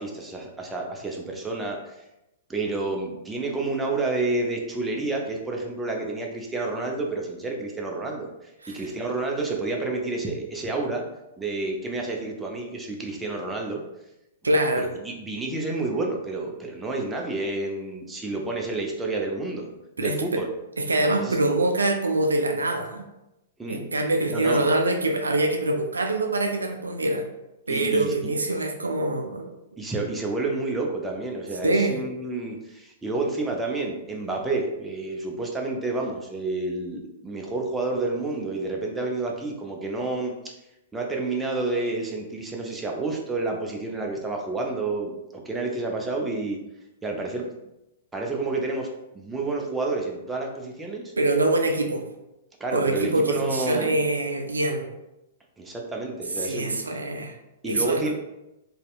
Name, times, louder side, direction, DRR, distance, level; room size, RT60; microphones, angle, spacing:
voice 1, 0.0-2.0 2.5-11.0 11.4-13.8 14.8-19.7 20.0-20.5 21.2-21.4 23.6-23.8 24.3-24.6 27.7-28.3 29.8-40.5 40.9-46.6 47.0-47.5 48.1-48.9 49.1-51.1 52.6-54.0 55.6-56.8 57.6-58.1, right 3 dB, 10° right, 0 dB, 0.4 m, -29 dB
voice 2, 14.4-14.8 20.0-20.4 20.9-23.0 23.7-27.3 27.7-29.5 31.6-32.0 51.2-52.1 52.7-54.9 56.4-57.3 57.6-58.1, right 2 dB, 90° right, 4 dB, 0.3 m, -24 dB
2.7 x 2.1 x 2.3 m, 0.91 s
hypercardioid pair, 115°, 0 cm